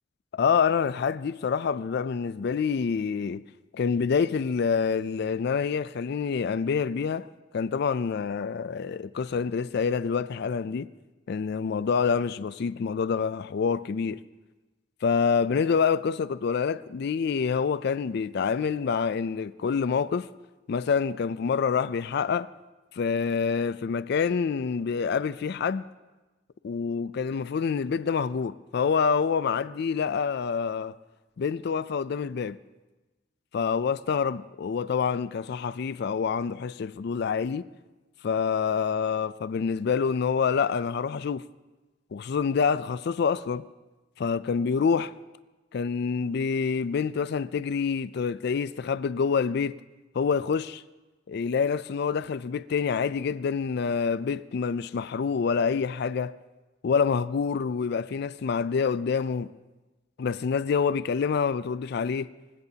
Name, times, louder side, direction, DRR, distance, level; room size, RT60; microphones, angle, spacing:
voice 1, 0.3-3.4 3.7-7.3 7.5-10.9 11.3-14.2 15.0-20.3 20.7-22.5 22.9-25.9 26.6-30.9 31.4-32.6 33.5-37.7 38.2-41.4 42.1-43.6 44.2-45.1 45.7-49.7 50.1-50.8 51.3-56.4 56.8-59.5 60.2-62.3, left 6 dB, 60° left, 0.4 m, -27 dB
26.0 x 16.5 x 2.8 m
head